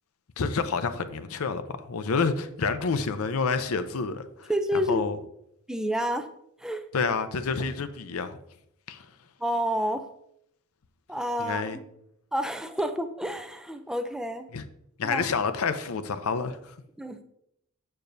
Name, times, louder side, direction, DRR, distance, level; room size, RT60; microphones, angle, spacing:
voice 1, 0.4-4.5 4.9-5.2 6.9-8.4 8.9-9.1 11.4-11.8 14.5-14.6 15.0-16.6, left 5 dB, 75° left, 0.6 m, -28 dB
voice 2, 4.5-5.1 5.7-6.3 6.6-6.8 9.4-10.1 11.1-11.8 12.3-14.5 15.0-15.3 17.0-17.2, equal, 5° right, 0.4 m, -29 dB
7.0 x 6.7 x 2.6 m
head